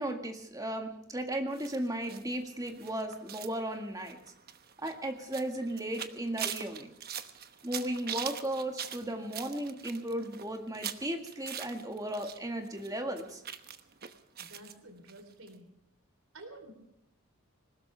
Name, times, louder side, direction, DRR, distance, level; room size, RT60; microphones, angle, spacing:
voice 1, 0.0-4.2 4.8-6.9 7.6-13.4, right 1 dB, 15° right, 4 dB, 1.9 m, -35 dB
sound 1, 1.5-12.4 12.6-14.7 15.1-15.2 15.5-15.6, right 9 dB, 45° right, 1.0 m, -42 dB
voice 2, 14.4-15.7 16.3-16.7, right 1 dB, 75° right, 7 dB, 3.7 m, -50 dB
21.0 x 19.0 x 3.4 m, 0.79 s
head